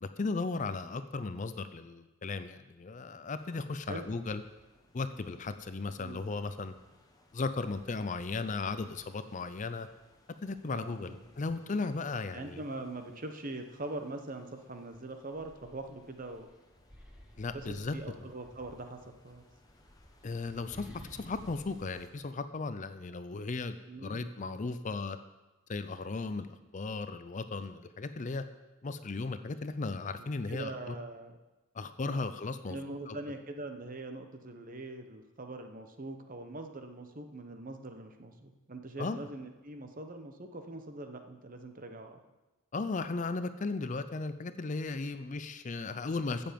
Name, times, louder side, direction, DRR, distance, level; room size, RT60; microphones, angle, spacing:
voice 1, 0.0-4.4 4.9-6.7 7.3-9.9 10.4-12.6 17.4-18.0 20.2-20.9 21.2-25.2 25.7-28.4 28.8-31.0 31.7-32.8 33.1-33.2 39.0-39.3 42.7-46.5, left 3 dB, 35° left, 11 dB, 0.5 m, -36 dB
sound 1, 3.4-22.1, left 1 dB, 15° left, 1.0 m, -61 dB
voice 2, 6.0-6.3 10.6-11.2 12.3-16.5 17.5-19.4 23.9-24.4 30.2-31.4 32.1-32.3 32.7-42.2, right 2 dB, 40° right, 6 dB, 1.0 m, -43 dB
sound 2, 14.9-18.5 19.5-23.1, equal, 5° right, 1.4 m, -55 dB
15.0 x 7.0 x 5.2 m, 1.1 s
head